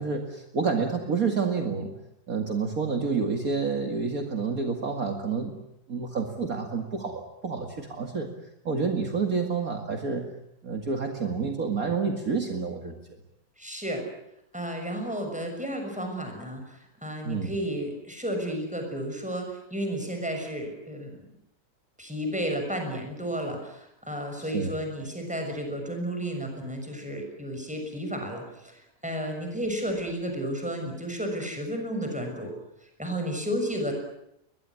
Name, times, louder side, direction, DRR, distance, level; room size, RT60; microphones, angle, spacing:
voice 1, 0.0-2.0 2.3-5.6 5.9-8.3 8.6-10.3 10.6-12.9 17.2-17.5 24.4-24.7, right 5 dB, 50° right, 4 dB, 2.5 m, -29 dB
voice 2, 13.6-14.1 14.5-21.3 22.0-32.5 33.0-33.9, equal, 5° right, 4 dB, 6.5 m, -32 dB
22.5 x 21.5 x 9.7 m, 0.80 s
omnidirectional pair, 1.9 m